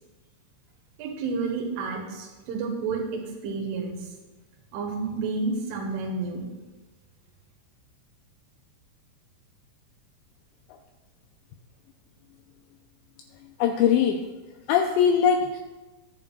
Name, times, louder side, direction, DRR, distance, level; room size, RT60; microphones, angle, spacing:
voice 1, 1.0-4.1 4.7-6.4, right 4 dB, 80° right, 0 dB, 3.6 m, -30 dB
voice 2, 13.6-14.2 14.7-15.6, left 8 dB, 90° left, 4 dB, 2.5 m, -21 dB
20.5 x 7.2 x 2.3 m, 1.2 s
omnidirectional pair, 5.5 m